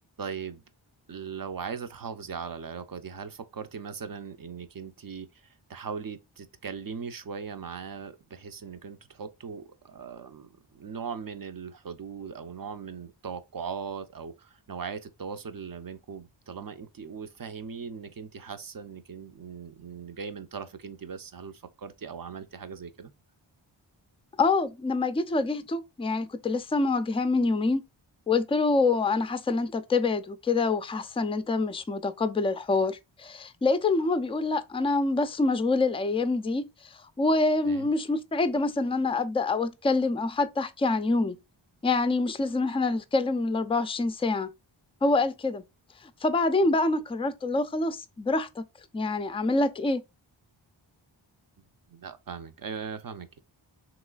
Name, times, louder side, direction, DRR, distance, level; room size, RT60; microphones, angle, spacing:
voice 1, 0.2-0.6 1.1-23.1 37.7-37.9 51.6-53.4, right 6 dB, 45° right, 0.6 m, -39 dB
voice 2, 24.4-27.8 28.3-36.7 37.2-41.4 41.8-44.5 45.0-45.6 46.2-48.6 48.9-50.0, left 3 dB, 15° left, 0.3 m, -26 dB
3.1 x 3.0 x 2.3 m
wide cardioid pair, 55°, 47 cm